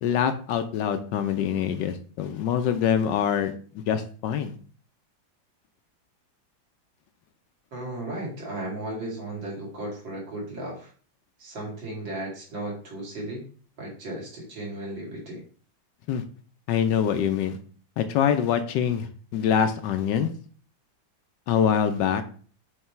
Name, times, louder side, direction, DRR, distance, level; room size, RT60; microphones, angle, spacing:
voice 1, 0.0-4.5 16.1-16.2 16.7-17.6 18.0-20.3 21.5-22.2, left 8 dB, 75° left, 9 dB, 1.2 m, -25 dB
voice 2, 7.7-10.9 11.4-13.4 13.8-15.4, right 1 dB, 70° right, -4 dB, 3.1 m, -35 dB
6.6 x 3.3 x 4.4 m, 0.42 s
omnidirectional pair, 2.1 m